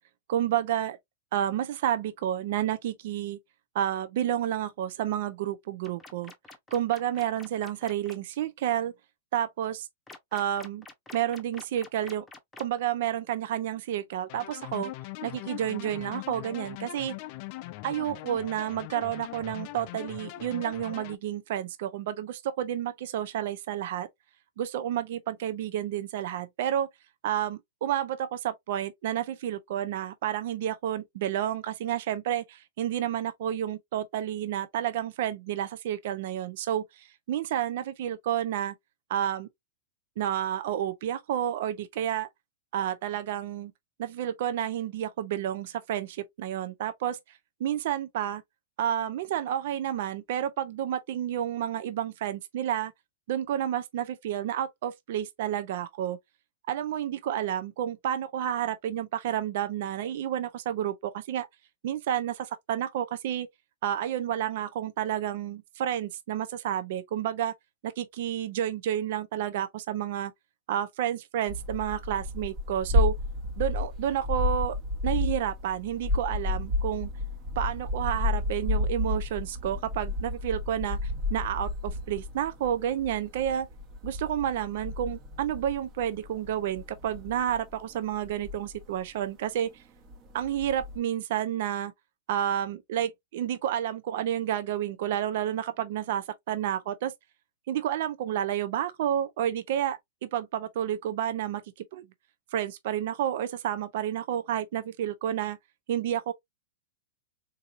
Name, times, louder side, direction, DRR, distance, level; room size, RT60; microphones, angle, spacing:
voice 1, 0.3-1.0 1.3-3.4 3.7-6.3 6.7-8.9 9.3-9.9 10.3-10.9 11.1-12.2 12.6-14.9 15.2-17.1 17.8-24.1 24.6-26.9 27.2-38.7 39.1-39.5 40.2-42.3 42.7-43.7 44.0-47.2 47.6-48.4 48.8-52.9 53.3-56.2 56.7-61.5 61.8-63.5 63.8-67.5 67.8-70.3 70.7-73.2 73.6-74.8 75.0-77.1 77.6-83.7 84.0-89.7 90.3-91.9 92.3-97.1 97.7-101.6 101.9-102.1 102.5-105.6 105.9-106.3, right 10 dB, 60° right, 0.6 m, -30 dB
sound 1, 5.8-8.2 10.1-12.8, left 3 dB, 10° left, 0.8 m, -47 dB
sound 2, 14.3-21.2, left 18 dB, 45° left, 0.4 m, -41 dB
sound 3, 71.5-89.2 89.6-89.7 90.1-91.0, left 2 dB, 35° right, 1.1 m, -31 dB
3.9 x 2.6 x 2.5 m
hypercardioid pair, 120°, 0 cm